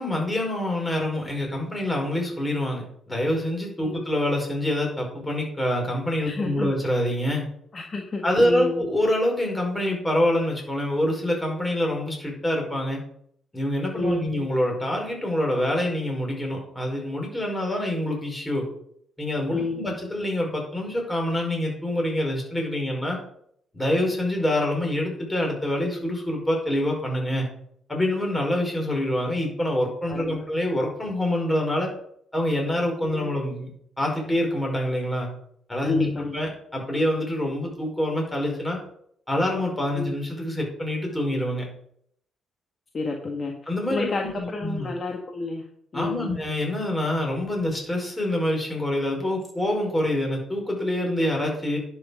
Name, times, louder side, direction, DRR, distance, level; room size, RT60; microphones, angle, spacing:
voice 1, 0.0-7.4 8.2-13.0 13.5-18.6 19.2-23.2 23.7-27.5 27.9-31.9 32.3-33.7 34.0-35.3 35.7-38.8 39.3-41.7 43.7-44.9 45.9-51.8, left 1 dB, 15° left, 0 dB, 5.2 m, -26 dB
voice 2, 6.2-6.7 7.7-8.8 13.9-14.4 19.5-19.8 30.1-30.4 33.0-33.3 35.8-36.4 39.9-40.1 42.9-43.5 43.9-45.6 45.9-46.3, left 2 dB, 40° left, 2 dB, 1.6 m, -29 dB
11.0 x 6.3 x 6.5 m, 0.67 s
cardioid pair, 90°, 0 cm